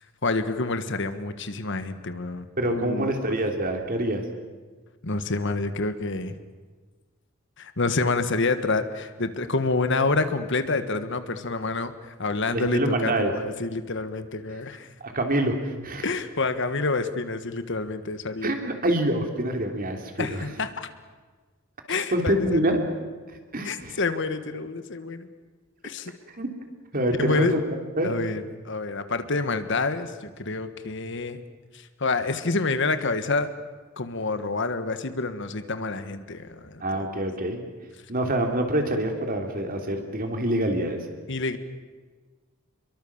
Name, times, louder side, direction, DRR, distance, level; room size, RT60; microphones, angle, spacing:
voice 1, 0.2-3.1 5.0-6.4 7.6-14.9 16.0-18.5 20.2-20.9 21.9-22.6 23.6-25.3 25.8-26.1 27.2-27.6 28.0-30.1 30.4-31.4 31.7-33.5 34.0-37.1 41.3-41.6, left 3 dB, 60° left, 10 dB, 1.6 m, -28 dB
voice 2, 2.6-4.2 12.5-13.3 15.1-16.1 18.4-20.4 22.1-22.8 23.5-24.0 26.4-26.5 26.9-27.6 28.0-28.1 36.8-37.6 38.1-41.0, right 1 dB, 45° right, 4 dB, 3.4 m, -26 dB
27.5 x 22.5 x 7.3 m, 1.4 s
head